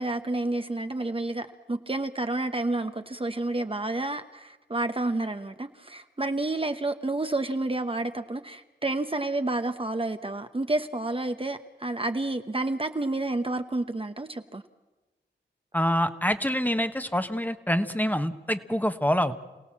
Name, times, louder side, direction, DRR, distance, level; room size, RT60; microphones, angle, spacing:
voice 1, 0.0-14.6, right 2 dB, 30° right, 7 dB, 1.0 m, -30 dB
voice 2, 15.7-19.3, equal, 10° left, 9 dB, 1.3 m, -26 dB
27.5 x 17.0 x 7.5 m, 1.2 s
cardioid pair, 45°, 19 cm